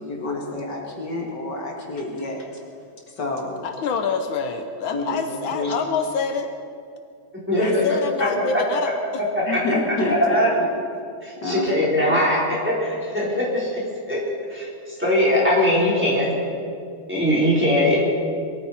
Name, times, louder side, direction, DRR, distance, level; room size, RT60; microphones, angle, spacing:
voice 1, 0.0-2.5 3.1-3.7 4.9-5.7 7.6-7.7 9.5-10.4 11.4-11.7 12.1-12.2, left 2 dB, 60° left, 0 dB, 2.4 m, -28 dB
voice 2, 3.6-6.5 7.6-9.2, left 5 dB, 80° left, 6 dB, 1.6 m, -26 dB
voice 3, 7.5-7.8 9.5-9.6 10.1-10.5 11.2-12.4 12.6-13.8 14.1-14.2 14.5-16.4 17.1-18.0, left 1 dB, 5° right, -6 dB, 4.1 m, -20 dB
22.0 x 14.0 x 4.4 m, 2.3 s
omnidirectional pair, 2.2 m